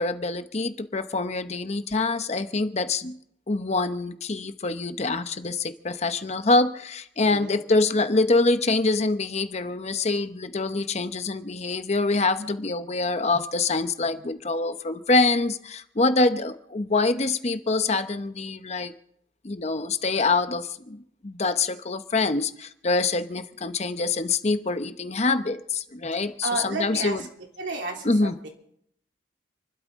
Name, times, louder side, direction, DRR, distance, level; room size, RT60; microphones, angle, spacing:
voice 1, 0.0-3.1 3.5-18.9 19.4-27.2 28.0-28.3, left 3 dB, 40° left, 10 dB, 0.8 m, -25 dB
voice 2, 7.2-7.6 26.4-27.3 27.6-28.5, right 3 dB, 85° right, 1 dB, 3.2 m, -32 dB
29.0 x 12.5 x 3.6 m, 0.71 s
head